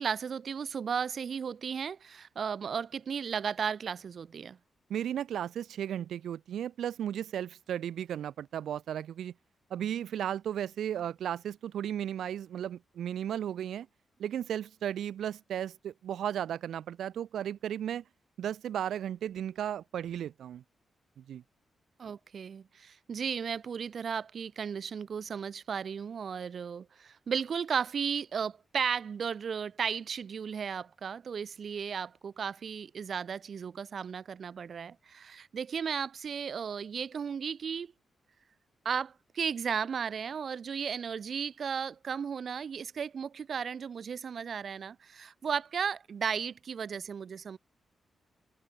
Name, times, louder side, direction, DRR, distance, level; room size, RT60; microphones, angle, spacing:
voice 1, 0.0-4.6 22.0-37.9 38.8-47.6, right 6 dB, 45° right, 0.9 m, -35 dB
voice 2, 4.9-9.3 9.7-13.9 14.2-18.0 18.4-20.6 21.2-21.4, right 10 dB, 90° right, 0.9 m, -35 dB
wide cardioid pair, 170°, 0 cm